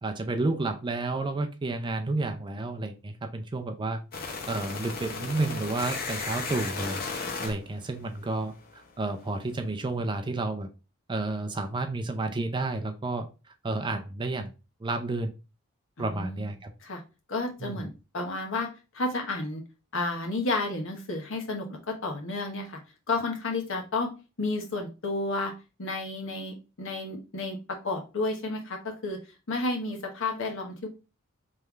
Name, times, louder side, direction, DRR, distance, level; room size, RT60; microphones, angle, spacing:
voice 1, 0.0-4.0 4.4-7.0 7.4-10.7 11.1-13.3 13.6-14.5 14.8-15.3 16.0-16.7 17.6-17.9, right 2 dB, 20° right, 6 dB, 0.4 m, -31 dB
sound 1, 4.1-9.0, left 4 dB, 45° left, 0.7 m, -36 dB
voice 2, 16.0-16.4 16.8-17.0 17.3-18.7 18.9-19.6 19.9-22.8 23.1-24.1 24.4-25.5 25.8-27.6 27.8-29.2 29.5-30.9, left 2 dB, 65° left, 3 dB, 1.0 m, -31 dB
3.6 x 3.3 x 3.0 m, 0.30 s
head